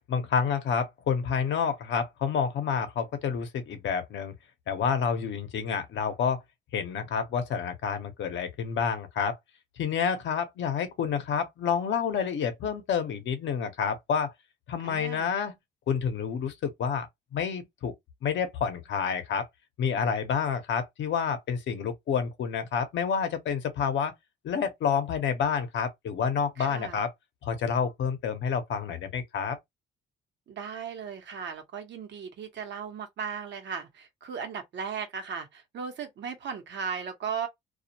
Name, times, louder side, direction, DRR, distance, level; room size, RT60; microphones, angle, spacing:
voice 1, 0.1-4.3 4.7-6.4 6.7-9.4 9.8-14.3 14.7-15.6 15.9-17.1 17.3-17.9 18.2-19.5 19.8-24.1 24.4-27.1 27.4-29.6, left 6 dB, 70° left, 0.7 m, -29 dB
voice 2, 14.8-15.3 26.6-27.0 30.5-37.5, right 6 dB, 65° right, 0.8 m, -36 dB
2.3 x 2.1 x 2.7 m
cardioid pair, 90°, 20 cm